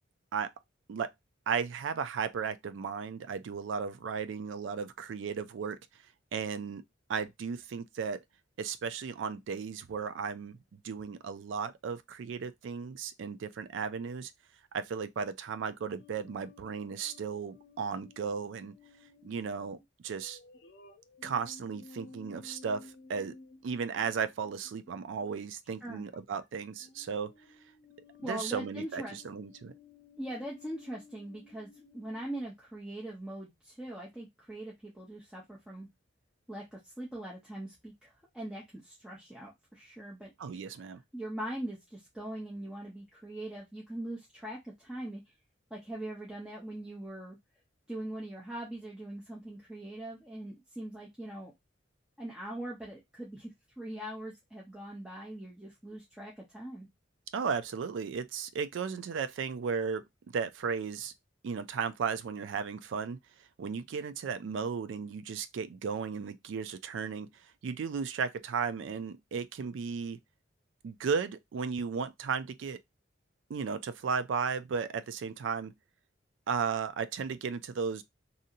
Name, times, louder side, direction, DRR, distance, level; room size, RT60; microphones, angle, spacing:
voice 1, 1.5-5.8 6.3-6.8 7.1-8.2 8.6-14.3 14.7-18.7 19.2-19.8 20.0-20.4 21.2-23.3 23.6-27.3 28.2-29.7 40.4-41.0 57.3-60.0 60.3-61.1 61.4-63.2 63.6-67.3 67.6-70.2 70.8-72.8 73.5-75.7 76.5-78.0, right 6 dB, 75° right, 0.3 m, -35 dB
sound 1, 16.0-25.4 26.1-26.5 26.8-32.4, left 4 dB, 60° left, 0.6 m, -56 dB
voice 2, 28.2-29.2 30.2-35.9 36.5-40.3 41.1-45.2 45.7-47.4 47.9-51.5 52.2-56.9, right 1 dB, 5° right, 0.6 m, -41 dB
2.7 x 2.7 x 2.5 m
head